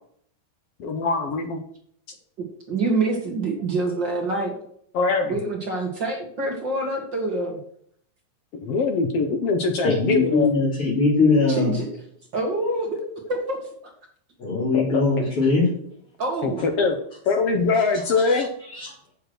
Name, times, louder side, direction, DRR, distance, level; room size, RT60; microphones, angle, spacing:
voice 1, 0.8-1.6 4.9-5.3 8.6-10.5 12.9-13.2 14.7-15.0 16.4-17.0 17.3-18.5, left 4 dB, 75° left, 5 dB, 1.4 m, -23 dB
voice 2, 2.7-4.5 5.3-7.6 11.5-11.9 12.3-13.0 13.3-13.6 16.2-16.6, right 2 dB, 45° right, 1 dB, 1.7 m, -26 dB
voice 3, 9.8-11.8 14.4-15.7 18.2-18.9, left 3 dB, 40° left, -6 dB, 3.9 m, -21 dB
7.8 x 7.2 x 6.2 m, 0.64 s
omnidirectional pair, 4.1 m